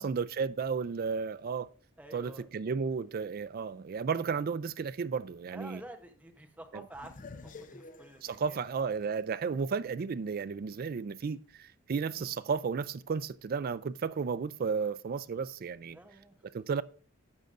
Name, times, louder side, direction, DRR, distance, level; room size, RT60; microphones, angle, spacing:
voice 1, 0.0-1.7 2.1-5.8 6.7-6.8 8.2-16.0 16.5-16.8, right 5 dB, 45° right, 0.4 m, -33 dB
voice 2, 2.0-2.5 5.5-8.6 15.9-16.5, right 1 dB, 10° right, 0.8 m, -49 dB
sound 1, 6.9-10.0 10.5-10.6 12.2-12.5, left 3 dB, 40° left, 0.6 m, -50 dB
11.5 x 7.8 x 2.5 m
head